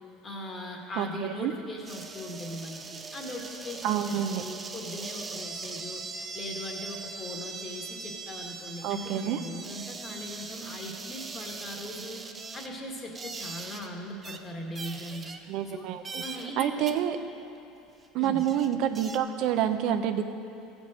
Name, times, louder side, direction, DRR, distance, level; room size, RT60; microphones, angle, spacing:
voice 1, 0.2-15.3 15.7-15.8 16.2-16.9 18.2-18.4, left 1 dB, 25° left, 0 dB, 1.6 m, -40 dB
voice 2, 1.0-1.5 3.8-4.4 8.8-9.4 15.5-16.2 16.6-17.2 18.1-20.2, right 10 dB, 60° right, 7 dB, 0.6 m, -28 dB
sound 1, 1.8-13.9 14.2-14.4 14.7-15.7 16.0-16.5 16.9-17.0 17.9-18.0 18.2-19.2, right 4 dB, 20° right, 0.6 m, -40 dB
14.5 x 5.3 x 7.5 m, 2.8 s
supercardioid pair, 135°, 0 cm